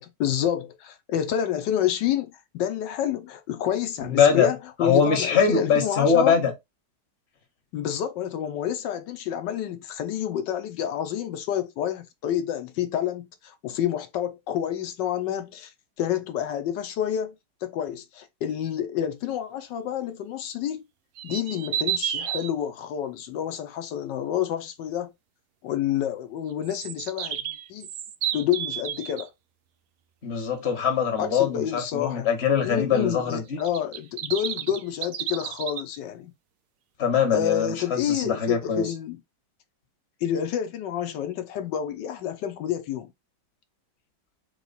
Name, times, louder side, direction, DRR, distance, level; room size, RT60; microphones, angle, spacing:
voice 1, 0.0-6.4 7.7-15.7 16.0-17.3 17.6-20.9 21.2-25.1 25.6-27.4 27.7-27.9 28.3-29.3 31.2-32.3 32.6-36.3 37.3-39.2 40.2-43.1, left 10 dB, 80° left, 1.3 m, -29 dB
voice 2, 4.0-4.5 4.8-6.5 30.2-33.6 37.0-38.9, left 6 dB, 40° left, 1.4 m, -22 dB
sound 1, 21.2-22.5 26.6-29.2 33.6-35.8, right 10 dB, 90° right, 0.6 m, -31 dB
3.7 x 3.1 x 4.0 m
omnidirectional pair, 1.9 m